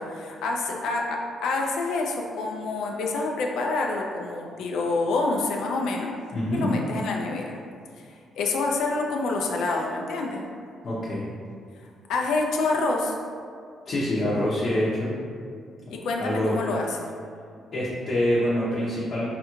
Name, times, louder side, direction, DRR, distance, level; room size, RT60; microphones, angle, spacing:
voice 1, 0.0-6.1 6.5-7.6 8.4-10.4 12.1-13.1 15.9-17.1, left 3 dB, 80° left, 0 dB, 0.3 m, -27 dB
voice 2, 6.3-6.7 10.8-11.2 13.9-15.1 16.2-16.6 17.7-19.3, left 1 dB, 50° left, -8 dB, 0.6 m, -25 dB
3.2 x 2.3 x 3.0 m, 2.2 s
cardioid pair, 90°, 0 cm